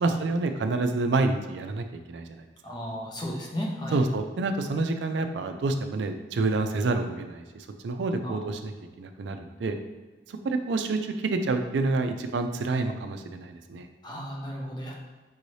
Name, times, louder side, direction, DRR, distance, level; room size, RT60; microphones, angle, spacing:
voice 1, 0.0-2.4 3.9-9.8 10.4-13.9, right 3 dB, 85° right, 6 dB, 0.4 m, -28 dB
voice 2, 2.6-4.0 8.2-8.4 14.0-15.0, equal, 25° left, -2 dB, 0.7 m, -34 dB
5.4 x 2.7 x 3.1 m, 1.3 s
head